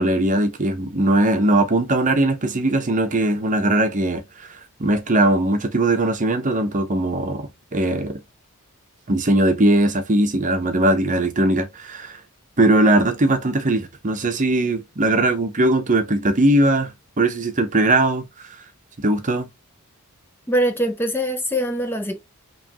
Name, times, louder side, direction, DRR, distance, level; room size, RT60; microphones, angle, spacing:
voice 1, 0.0-4.5 4.8-8.2 9.1-12.2 12.6-18.2 19.0-19.5, right 1 dB, 35° right, 0.8 m, -20 dB
voice 2, 20.5-22.2, equal, 10° left, 0.6 m, -22 dB
5.0 x 3.1 x 2.9 m
head